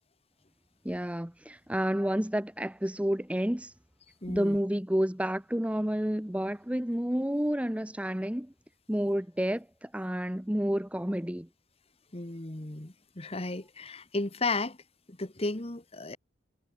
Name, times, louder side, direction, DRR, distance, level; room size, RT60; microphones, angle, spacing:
voice 1, 0.8-3.7 4.3-8.5 8.9-11.5, equal, 5° right, 0.9 m, -30 dB
voice 2, 4.2-4.6 12.1-14.8 15.1-16.2, left 3 dB, 30° left, 1.4 m, -34 dB
head